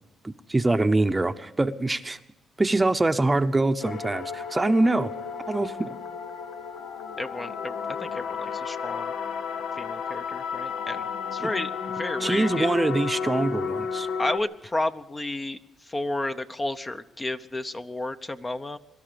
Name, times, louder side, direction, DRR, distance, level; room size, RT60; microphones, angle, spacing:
voice 1, 0.2-2.2 2.6-5.1 5.5-6.0 11.4-11.5 12.2-14.1, right 2 dB, 15° right, 10 dB, 0.8 m, -24 dB
sound 1, 3.8-14.4, left 6 dB, 75° left, 1.1 m, -32 dB
voice 2, 7.2-9.1 9.8-11.7 12.0-12.7 14.2-18.8, left 2 dB, 20° left, 10 dB, 0.8 m, -32 dB
23.0 x 12.5 x 5.1 m, 1.0 s
cardioid pair, 90°, 0 cm